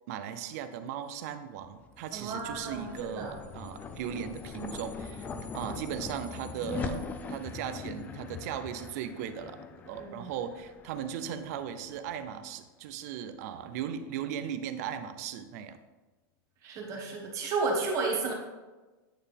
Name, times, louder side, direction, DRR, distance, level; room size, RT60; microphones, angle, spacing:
voice 1, 0.1-15.8, right 8 dB, 50° right, 10 dB, 0.5 m, -38 dB
sound 1, 1.8-12.3, left 5 dB, 15° left, 0.3 m, -41 dB
voice 2, 2.1-3.3 10.0-10.3 16.6-18.3, right 3 dB, 25° right, 0 dB, 1.2 m, -32 dB
9.2 x 4.4 x 3.5 m, 1.2 s
supercardioid pair, 165°, 11 cm